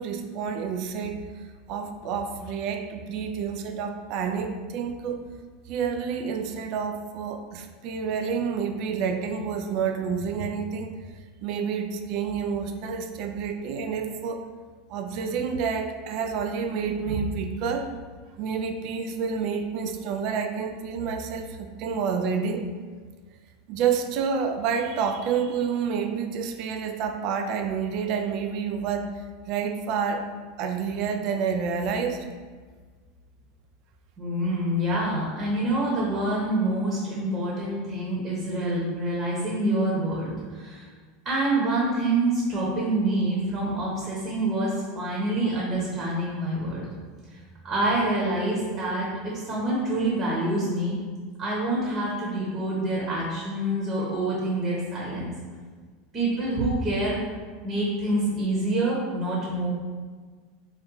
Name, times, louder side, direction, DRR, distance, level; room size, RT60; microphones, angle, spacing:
voice 1, 0.0-5.2 5.7-10.9 11.4-14.4 14.9-17.9 18.4-22.7 23.7-30.3 30.6-32.3, right 6 dB, 55° right, 6 dB, 0.3 m, -29 dB
voice 2, 34.2-40.9 41.2-46.8 47.6-51.0 51.4-55.3 56.1-57.2 57.6-59.7, right 1 dB, 40° right, -5 dB, 0.9 m, -26 dB
3.0 x 2.1 x 3.8 m, 1.5 s
hypercardioid pair, 105°, 0 cm